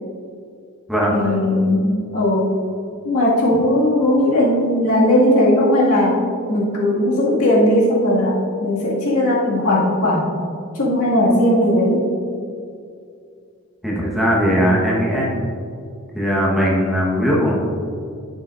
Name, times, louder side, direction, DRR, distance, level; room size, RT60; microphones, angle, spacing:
voice 1, 1.1-2.5 3.0-6.2 6.5-10.3 10.7-12.1, left 1 dB, 75° left, -5 dB, 1.9 m, -17 dB
voice 2, 13.8-15.3 16.1-17.5, equal, ahead, -5 dB, 1.1 m, -18 dB
11.0 x 6.6 x 2.5 m, 2.4 s
head